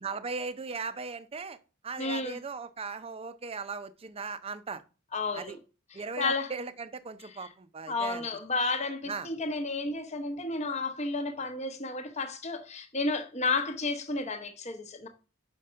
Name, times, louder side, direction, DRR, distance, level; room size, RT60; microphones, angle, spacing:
voice 1, 0.0-1.6 1.8-4.8 5.3-5.6 5.9-8.2 9.1-9.3, right 4 dB, 30° right, 0.5 m, -38 dB
voice 2, 2.0-2.4 5.1-5.6 5.9-6.5 7.4-7.5 7.9-15.1, left 3 dB, 35° left, 0.9 m, -32 dB
5.2 x 5.0 x 5.5 m
head